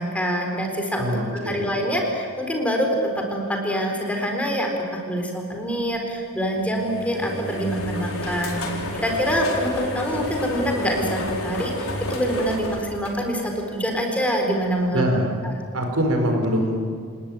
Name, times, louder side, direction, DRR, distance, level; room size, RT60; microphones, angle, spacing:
voice 1, 0.0-15.0, equal, 5° left, 2 dB, 4.0 m, -25 dB
voice 2, 1.0-1.6 14.9-15.3 15.7-16.8, equal, 70° right, 3 dB, 4.8 m, -23 dB
sound 1, 6.5-13.8, left 1 dB, 70° left, 4.5 m, -31 dB
28.5 x 19.0 x 9.1 m, 2.2 s
head